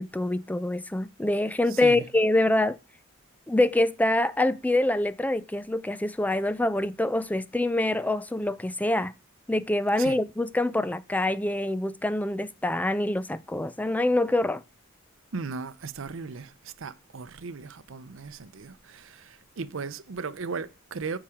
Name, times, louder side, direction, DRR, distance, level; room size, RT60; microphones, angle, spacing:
voice 1, 0.0-2.8 3.5-9.1 9.5-14.6, left 1 dB, 10° left, 0.4 m, -25 dB
voice 2, 1.7-2.0 10.0-10.2 15.3-21.2, right 4 dB, 75° right, 0.6 m, -37 dB
8.7 x 4.8 x 4.9 m
head